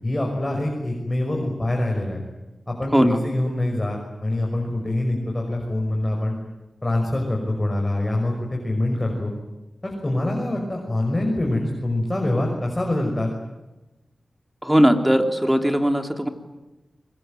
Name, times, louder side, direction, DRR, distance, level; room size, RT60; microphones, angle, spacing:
voice 1, 0.0-2.2 2.7-6.4 6.8-9.3 9.8-13.3, left 1 dB, 25° left, 0 dB, 6.0 m, -25 dB
voice 2, 2.9-3.2 14.6-16.3, equal, 10° right, 6 dB, 3.1 m, -19 dB
25.5 x 22.0 x 9.3 m, 1.1 s
wide cardioid pair, 65°, 0 cm